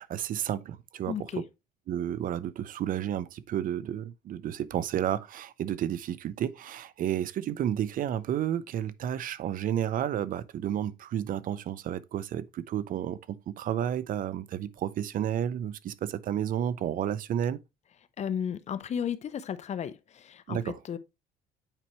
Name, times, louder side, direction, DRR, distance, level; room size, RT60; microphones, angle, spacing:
voice 1, 0.0-1.4 1.9-17.6 20.5-20.8, right 10 dB, 55° right, 0.6 m, -31 dB
voice 2, 1.1-1.4 18.2-20.6 20.9-21.0, left 8 dB, 40° left, 0.7 m, -34 dB
9.0 x 4.4 x 3.0 m
cardioid pair, 110°, 17 cm